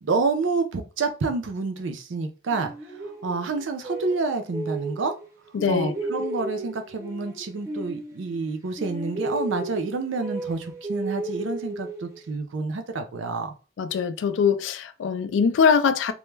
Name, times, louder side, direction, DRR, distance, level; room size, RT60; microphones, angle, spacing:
voice 1, 0.0-2.7 3.0-5.1 5.7-13.5, right 3 dB, 85° right, 0.5 m, -28 dB
sound 1, 2.5-5.3 5.6-8.5 8.8-12.3, right 2 dB, 15° right, 0.6 m, -34 dB
voice 2, 5.5-5.9 13.8-16.1, left 6 dB, 80° left, 0.3 m, -22 dB
2.2 x 2.1 x 3.1 m
head